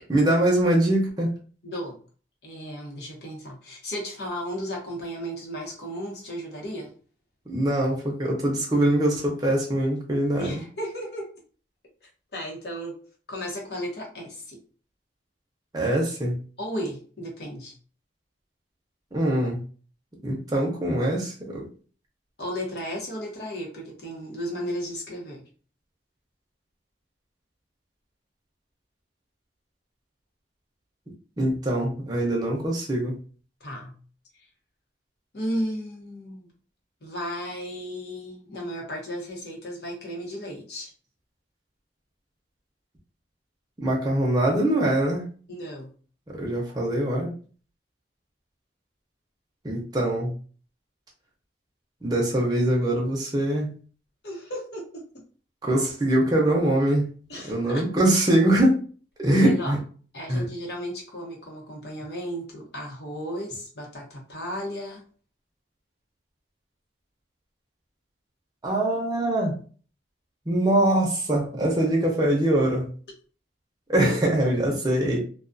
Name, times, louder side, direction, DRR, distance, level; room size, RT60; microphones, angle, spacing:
voice 1, 0.1-1.3 7.5-10.6 15.7-16.4 19.1-19.6 20.2-21.6 31.4-33.2 43.8-45.2 46.3-47.3 49.6-50.3 52.0-53.7 55.6-57.1 57.4-58.8 59.2-59.8 60.3-60.4 68.6-69.6 70.5-72.9 73.9-75.2, right 1 dB, 20° right, -2 dB, 0.6 m, -23 dB
voice 2, 1.6-2.0 2.4-6.9 10.4-11.3 12.3-13.0 13.3-14.6 16.6-17.7 22.4-25.4 33.6-34.0 35.3-36.5 37.0-40.9 45.5-45.9 54.2-55.2 57.3-57.8 59.4-59.7 60.1-65.0 74.0-74.1, equal, 65° left, -1 dB, 0.9 m, -34 dB
2.3 x 2.3 x 2.5 m, 0.40 s
head